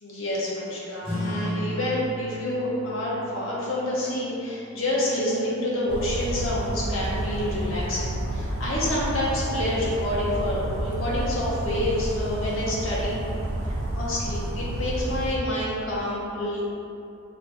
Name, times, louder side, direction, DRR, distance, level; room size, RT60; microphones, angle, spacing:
voice 1, 0.0-13.2 13.7-16.6, left 1 dB, 70° left, -6 dB, 0.8 m, -28 dB
sound 1, 1.0-6.1, equal, 25° right, 0.9 m, -35 dB
Bird vocalization bird call bird song, 5.9-15.4, right 1 dB, 55° right, 0.3 m, -30 dB
2.9 x 2.6 x 3.2 m, 2.7 s
head